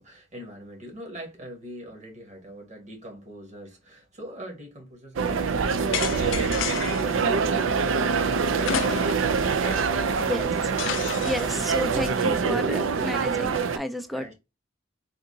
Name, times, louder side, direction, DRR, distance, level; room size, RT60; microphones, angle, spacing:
voice 1, 0.0-11.3 14.1-14.3, right 1 dB, 40° right, 1.5 m, -42 dB
sound 1, 5.2-13.8, right 5 dB, 85° right, 0.5 m, -25 dB
sound 2, 5.9-7.1 8.6-9.4 9.7-9.8 10.8-11.6, left 9 dB, 75° left, 0.4 m, -31 dB
voice 2, 11.2-14.3, left 1 dB, ahead, 0.4 m, -31 dB
3.6 x 2.7 x 2.7 m
head